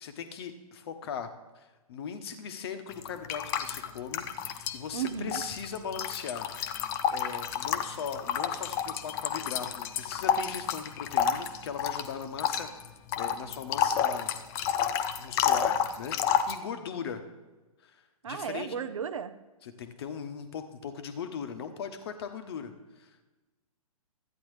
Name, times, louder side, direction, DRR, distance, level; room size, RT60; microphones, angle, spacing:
voice 1, 0.0-6.5 7.1-12.7 13.2-14.4 15.2-17.2 17.8-18.8 19.6-23.2, left 7 dB, 45° left, 9 dB, 1.0 m, -39 dB
sound 1, 2.9-4.8 5.1-16.6, left 9 dB, 15° left, 0.3 m, -30 dB
voice 2, 4.9-5.4 18.2-19.3, right 7 dB, 60° right, 12 dB, 0.7 m, -34 dB
13.0 x 9.5 x 3.2 m, 1.2 s
figure-of-eight pair, 125°, 19 cm